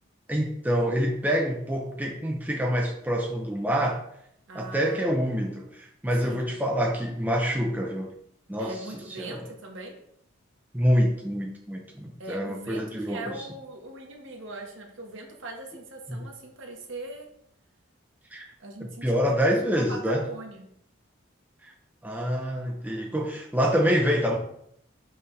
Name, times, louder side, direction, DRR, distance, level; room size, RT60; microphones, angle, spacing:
voice 1, 0.3-4.0 4.5-8.1 8.5-8.7 9.2-9.4 10.7-13.2 16.1-16.2 18.3-18.4 18.8-20.2 22.0-24.4, equal, 10° right, 0 dB, 0.5 m, -26 dB
voice 2, 4.5-5.2 6.2-6.5 8.6-10.0 12.2-17.3 18.6-20.6, right 2 dB, 70° right, 1 dB, 1.3 m, -41 dB
5.8 x 5.4 x 3.3 m, 0.72 s
head